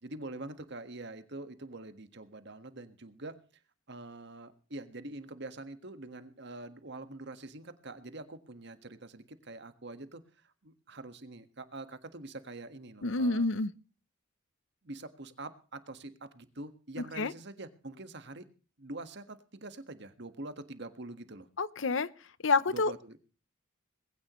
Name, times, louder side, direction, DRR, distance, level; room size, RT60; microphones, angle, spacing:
voice 1, 0.0-3.4 3.9-13.6 14.8-18.5 18.8-21.5 22.7-23.2, right 2 dB, 60° right, 9 dB, 1.7 m, -45 dB
voice 2, 13.0-13.7 17.2-17.3 21.6-22.1 22.4-22.9, left 3 dB, 70° left, 17 dB, 0.8 m, -28 dB
20.5 x 16.5 x 3.1 m, 0.37 s
head